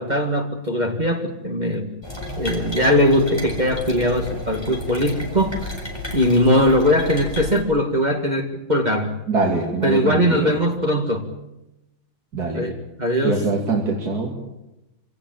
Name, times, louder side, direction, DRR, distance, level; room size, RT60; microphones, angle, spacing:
voice 1, 0.0-1.9 2.4-5.6 6.1-9.1 9.8-11.2 12.5-13.5, equal, 20° right, 4 dB, 2.0 m, -20 dB
sound 1, 2.0-7.6, left 2 dB, 10° left, 4.5 m, -32 dB
voice 2, 9.3-10.6 12.3-12.7 13.2-14.4, right 3 dB, 50° right, -1 dB, 3.4 m, -23 dB
26.0 x 17.5 x 9.0 m, 0.93 s
omnidirectional pair, 2.2 m